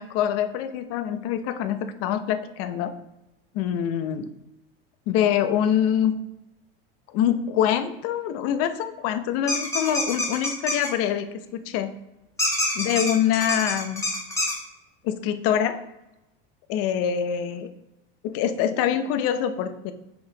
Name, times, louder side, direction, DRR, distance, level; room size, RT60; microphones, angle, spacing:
voice 1, 0.0-2.9 3.5-4.3 5.1-6.1 7.1-11.9 12.8-14.0 15.0-15.8 16.7-17.7 18.2-19.9, left 9 dB, 50° left, 10 dB, 0.8 m, -25 dB
sound 1, 9.5-10.9 12.4-14.5, left 1 dB, 10° left, 1.6 m, -26 dB
5.4 x 4.6 x 3.9 m, 0.92 s
supercardioid pair, 115°, 29 cm